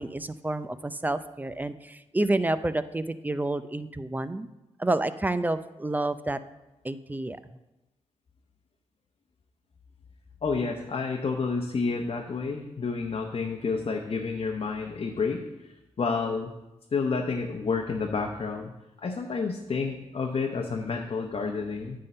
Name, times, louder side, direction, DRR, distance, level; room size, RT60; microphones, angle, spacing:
voice 1, 0.0-4.5 4.8-6.4 6.8-7.4, right 2 dB, 15° right, 13 dB, 0.5 m, -29 dB
voice 2, 10.4-15.4 16.0-16.5 16.9-18.7 19.0-22.0, left 4 dB, 50° left, 1 dB, 0.9 m, -29 dB
9.5 x 3.7 x 6.7 m, 0.97 s
cardioid pair, 60°, 12 cm